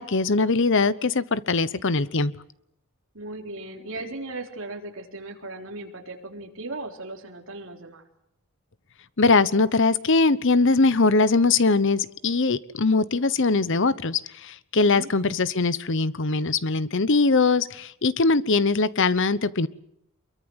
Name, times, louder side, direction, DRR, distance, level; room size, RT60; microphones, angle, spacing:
voice 1, 0.0-2.3 9.2-19.7, left 3 dB, 55° left, 17 dB, 0.9 m, -21 dB
voice 2, 3.1-8.0 14.8-15.1, right 2 dB, 60° right, 2 dB, 3.9 m, -37 dB
25.0 x 23.0 x 8.0 m, 0.75 s
head